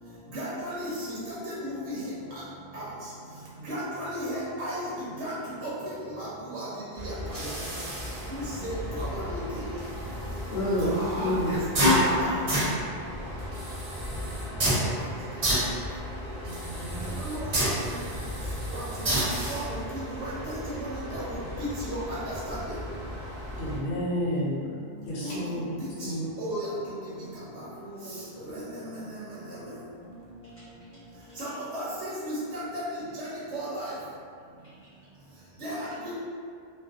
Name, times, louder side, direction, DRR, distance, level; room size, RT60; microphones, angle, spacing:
voice 1, 0.3-2.4 2.7-2.9 3.6-4.9 5.2-5.4 5.6-5.7 6.2-6.7 6.9-7.5 8.3-9.6 10.8-12.4 17.2-17.5 17.9-18.0 18.7-18.8 19.1-22.8 25.2-25.4 25.8-26.1 26.4-26.9 27.5-27.6 28.5-28.6 29.1-29.2 29.5-29.7 31.4-33.9 35.6-36.1, equal, 90° right, -8 dB, 1.0 m, -35 dB
sound 1, 7.0-23.8, equal, 45° right, 0.5 m, -31 dB
voice 2, 10.5-10.9 11.2-12.0 16.4-17.2 23.6-24.6 25.1-25.7 26.0-26.3, left 1 dB, 70° left, -7 dB, 0.9 m, -30 dB
voice 3, 27.5-28.4 30.4-30.8 34.6-35.6, right 1 dB, 45° left, -12 dB, 0.9 m, -49 dB
2.4 x 2.2 x 2.4 m, 2.3 s
omnidirectional pair, 1.1 m